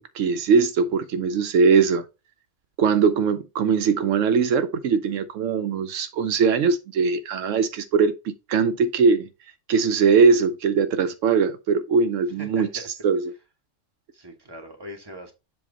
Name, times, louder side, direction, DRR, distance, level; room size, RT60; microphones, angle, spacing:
voice 1, 0.0-2.0 2.8-9.3 9.7-13.3, right 5 dB, 80° right, 0.9 m, -21 dB
voice 2, 12.4-12.9 14.1-15.3, right 1 dB, 20° right, 1.1 m, -40 dB
7.4 x 2.6 x 4.9 m
omnidirectional pair, 1.3 m